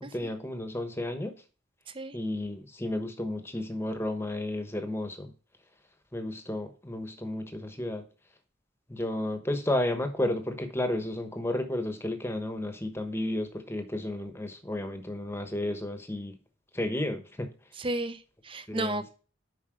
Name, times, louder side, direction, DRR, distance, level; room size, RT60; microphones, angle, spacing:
voice 1, 0.0-1.3 2.1-5.3 6.1-8.1 8.9-16.4 16.7-17.5 18.7-19.0, left 1 dB, 10° left, 7 dB, 1.0 m, -32 dB
voice 2, 17.8-19.1, right 2 dB, 25° right, 12 dB, 0.6 m, -33 dB
7.6 x 5.3 x 4.9 m, 0.36 s
head